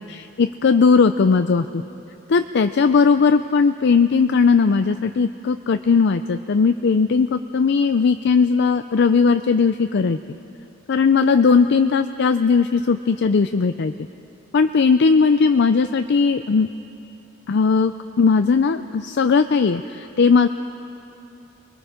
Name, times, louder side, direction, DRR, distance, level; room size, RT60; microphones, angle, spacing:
voice 1, 0.4-1.8 2.3-10.2 10.9-13.9 14.5-16.7 17.5-20.5, left 5 dB, 60° left, 9 dB, 0.5 m, -18 dB
28.0 x 21.0 x 5.0 m, 2.8 s
head